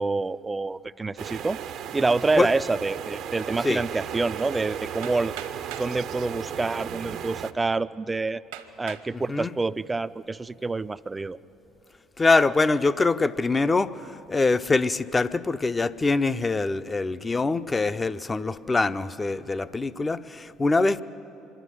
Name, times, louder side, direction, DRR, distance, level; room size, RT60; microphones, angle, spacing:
voice 1, 0.0-1.6 1.9-5.3 5.8-8.4 8.8-11.4, right 3 dB, 20° right, 14 dB, 0.4 m, -27 dB
sound 1, 1.2-7.5, right 9 dB, 60° right, 0.7 m, -35 dB
Hammer, 5.0-6.0 6.9-7.0 7.6-7.7 8.5-9.1 9.7-10.1, right 10 dB, 80° right, 1.2 m, -41 dB
voice 2, 9.1-9.5 12.2-21.0, left 3 dB, 25° left, 12 dB, 0.6 m, -24 dB
25.0 x 11.5 x 9.9 m, 2.9 s
hypercardioid pair, 60°, 0 cm